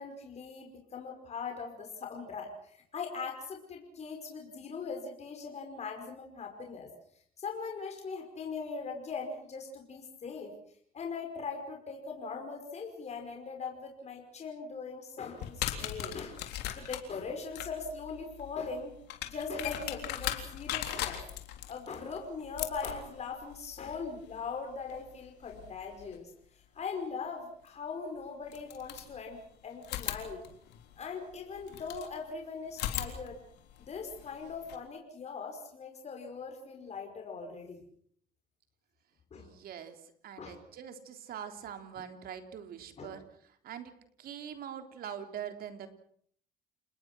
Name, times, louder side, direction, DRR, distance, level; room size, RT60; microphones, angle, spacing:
voice 1, 0.0-6.9 7.4-10.5 10.9-18.9 19.3-21.2 21.7-30.4 31.0-33.4 33.8-37.8 39.3-39.5 40.4-40.6 43.0-43.2, left 5 dB, 40° left, 2 dB, 5.4 m, -40 dB
sound 1, 15.4-26.2 27.7-27.8 28.5-29.5 29.8-32.1 32.7-34.8, left 12 dB, 85° left, 3.7 m, -40 dB
voice 2, 39.3-45.9, right 8 dB, 65° right, 7 dB, 3.5 m, -44 dB
29.5 x 20.5 x 6.1 m, 0.63 s
cardioid pair, 110°, 17 cm